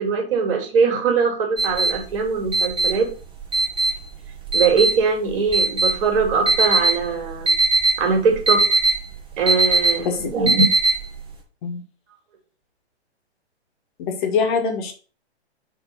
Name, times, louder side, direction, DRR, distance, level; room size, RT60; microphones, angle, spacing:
voice 1, 0.0-3.1 4.5-7.5 8.0-8.6 9.4-10.6, right 5 dB, 50° right, 2 dB, 3.1 m, -21 dB
sound 1, 1.6-11.3, right 2 dB, 15° right, 1.7 m, -20 dB
voice 2, 10.0-10.3 11.6-11.8 14.0-14.9, left 5 dB, 45° left, 3 dB, 1.9 m, -23 dB
6.0 x 3.7 x 6.1 m, 0.38 s
hypercardioid pair, 130°, 34 cm